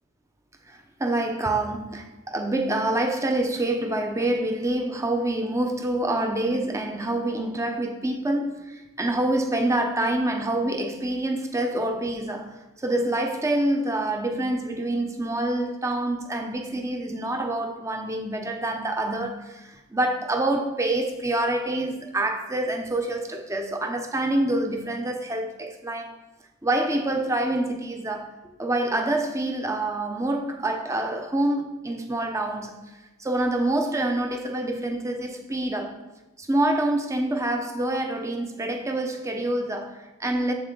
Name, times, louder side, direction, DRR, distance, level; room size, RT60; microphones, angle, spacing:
voice 1, 0.7-26.1 26.6-28.3 28.6-32.8 33.2-36.0 36.4-40.5, right 1 dB, 15° right, 0.7 m, -26 dB
7.9 x 7.1 x 3.8 m
head